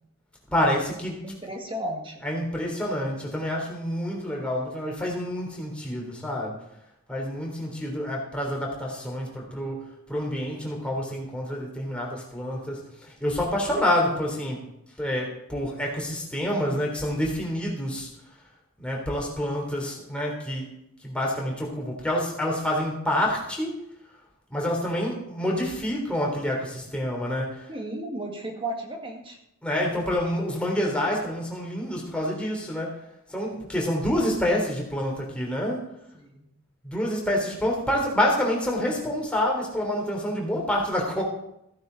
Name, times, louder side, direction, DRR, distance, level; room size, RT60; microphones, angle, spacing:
voice 1, 0.5-1.2 2.2-6.6 7.1-14.6 15.0-18.1 18.8-20.7 21.0-23.7 24.5-27.7 29.6-33.0 33.3-35.8 36.8-41.2, left 1 dB, 5° left, -2 dB, 3.4 m, -27 dB
voice 2, 1.2-2.3 27.7-29.4 36.1-36.5, right 1 dB, 25° right, 2 dB, 2.0 m, -34 dB
15.5 x 9.5 x 4.1 m, 0.80 s
head